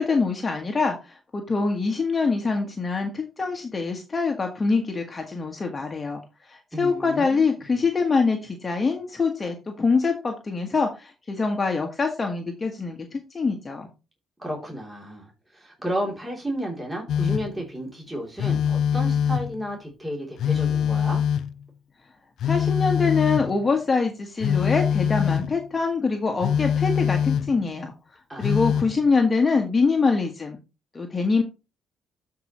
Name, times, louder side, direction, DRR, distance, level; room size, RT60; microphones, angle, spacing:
voice 1, 0.0-6.2 6.5-13.9 22.4-27.9 28.4-30.6 30.9-31.4, left 4 dB, 30° left, 3 dB, 1.4 m, -24 dB
voice 2, 6.7-7.5 7.8-7.9 14.4-21.2 28.3-29.0, equal, 10° right, -2 dB, 3.2 m, -33 dB
Telephone, 17.1-17.6 18.4-19.6 20.4-21.6 22.4-23.6 24.4-25.5 26.4-27.6 28.4-29.0, left 8 dB, 75° left, 0.3 m, -23 dB
12.5 x 4.8 x 3.1 m, 0.29 s
cardioid pair, 90°, 0 cm